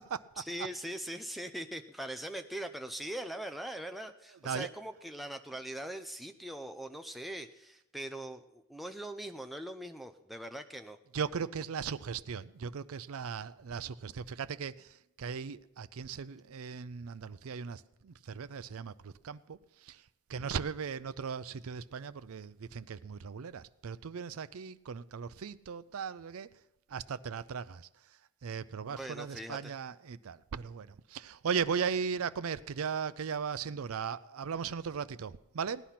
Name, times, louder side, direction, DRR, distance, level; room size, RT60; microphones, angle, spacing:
voice 1, 0.4-11.0 28.9-29.7, right 1 dB, ahead, 0.6 m, -41 dB
voice 2, 11.1-26.5 26.9-35.8, right 6 dB, 80° right, 0.5 m, -38 dB
17.0 x 10.5 x 5.8 m
head